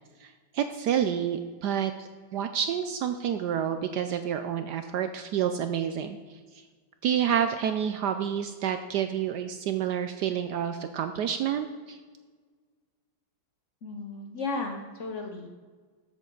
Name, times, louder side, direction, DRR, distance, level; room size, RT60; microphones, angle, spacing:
voice 1, 0.2-6.4 7.0-12.0, right 8 dB, 75° right, 9 dB, 1.0 m, -29 dB
voice 2, 13.8-15.5, left 3 dB, 55° left, 3 dB, 0.9 m, -34 dB
13.5 x 7.6 x 3.8 m, 1.5 s
omnidirectional pair, 2.2 m